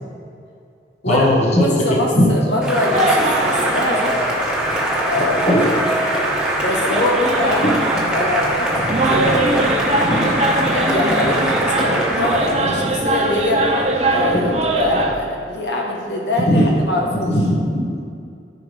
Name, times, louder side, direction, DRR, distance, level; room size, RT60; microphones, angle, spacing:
voice 1, 1.1-2.3 5.5-5.7 7.6-7.7 10.0-10.4 16.5-16.6 17.3-18.1, equal, 40° left, -2 dB, 1.4 m, -18 dB
voice 2, 1.6-4.2 5.0-6.0 6.6-7.6 8.1-10.1 10.6-13.7 14.1-17.3, left 1 dB, 80° left, -1 dB, 1.3 m, -23 dB
Cheering / Applause, 2.6-12.7, right 1 dB, 5° right, 1.3 m, -22 dB
sound 1, 2.9-15.1, right 2 dB, 35° right, 0.8 m, -23 dB
14.0 x 4.9 x 3.4 m, 2.4 s
head